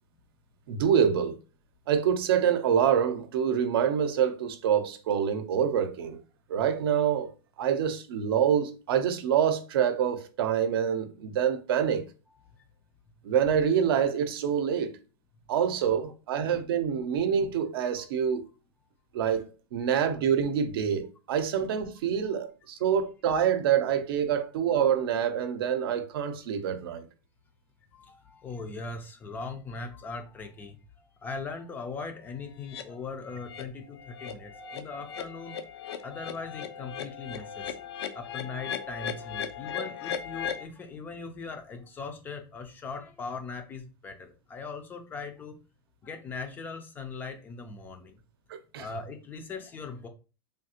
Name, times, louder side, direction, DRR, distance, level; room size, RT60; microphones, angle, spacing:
voice 1, 0.7-1.4 1.9-6.2 6.5-7.3 7.6-12.0 13.2-14.9 15.5-18.4 19.1-27.1 48.5-48.9, right 8 dB, 65° right, 0.6 m, -26 dB
voice 2, 27.9-35.6 36.0-37.8 38.1-45.6 46.0-48.2 48.8-50.1, left 4 dB, 15° left, 0.4 m, -40 dB
sound 1, 32.7-32.8 33.3-33.6 34.0-40.7, left 8 dB, 85° left, 0.5 m, -37 dB
3.3 x 2.4 x 2.8 m
supercardioid pair, 160°, 13 cm